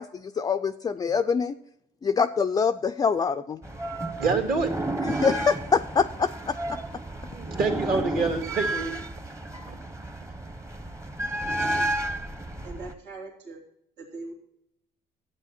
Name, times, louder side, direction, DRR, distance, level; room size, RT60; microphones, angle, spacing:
voice 1, 0.0-1.6 2.0-3.6 5.1-6.8, left 5 dB, 25° left, 7 dB, 0.3 m, -25 dB
sound 1, 3.6-12.9, right 1 dB, 15° right, 0.9 m, -32 dB
voice 2, 4.2-4.7 7.3-9.0 9.6-9.8, right 4 dB, 60° right, 3 dB, 2.1 m, -26 dB
voice 3, 11.7-12.1 12.6-13.6 14.0-14.3, right 3 dB, 85° right, -2 dB, 2.7 m, -41 dB
12.0 x 8.8 x 4.3 m, 0.76 s
cardioid pair, 110°, 17 cm